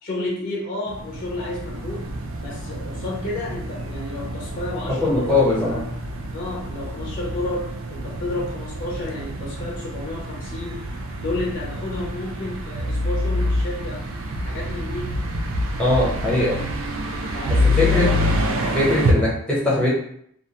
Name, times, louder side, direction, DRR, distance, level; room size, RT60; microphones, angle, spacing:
voice 1, 0.0-2.1 2.4-5.9 6.3-10.9 11.2-14.0 14.4-15.2 17.3-18.1 18.8-19.1, left 2 dB, 40° left, -4 dB, 0.5 m, -31 dB
sound 1, 0.9-19.1, left 1 dB, 60° right, 0.4 m, -27 dB
voice 2, 5.0-5.9 15.8-16.6 17.6-18.1 18.7-19.9, left 2 dB, 5° left, -6 dB, 0.8 m, -20 dB
2.4 x 2.2 x 2.8 m, 0.68 s
head